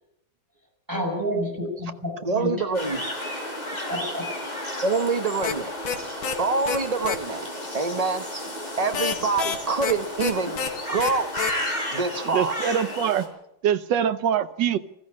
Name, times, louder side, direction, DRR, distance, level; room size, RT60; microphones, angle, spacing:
voice 1, 0.9-2.8 3.8-4.2, equal, 10° right, 5.8 m, -29 dB
voice 2, 2.2-3.0 4.8-5.7 6.4-7.5 7.7-8.3 8.8-11.3 11.9-12.6, right 4 dB, 30° right, 0.7 m, -25 dB
sound 1, 2.7-13.3, left 1 dB, 20° left, 4.4 m, -33 dB
sound 2, 5.4-5.5 5.8-6.0 6.2-6.4 6.7-6.8 7.0-7.2 8.9-9.9 10.2-10.3 10.6-10.7 11.0-11.1 11.4-11.5, left 7 dB, 70° left, 2.5 m, -27 dB
voice 3, 12.3-13.3 13.6-14.8, right 9 dB, 65° right, 1.5 m, -24 dB
20.5 x 14.5 x 8.7 m
omnidirectional pair, 2.3 m